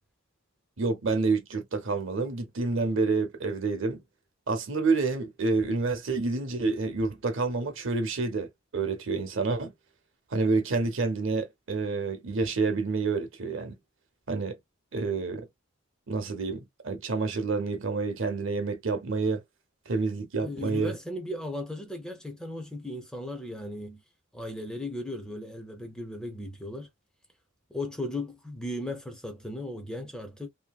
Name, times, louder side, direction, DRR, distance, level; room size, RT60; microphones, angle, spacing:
voice 1, 0.8-4.0 4.5-9.7 10.3-13.8 14.3-14.6 14.9-15.5 16.1-19.4 19.9-21.0, right 3 dB, 65° right, 0.8 m, -28 dB
voice 2, 20.4-24.0 24.3-26.9 27.7-30.5, left 1 dB, 5° left, 0.6 m, -36 dB
2.7 x 2.7 x 2.3 m
head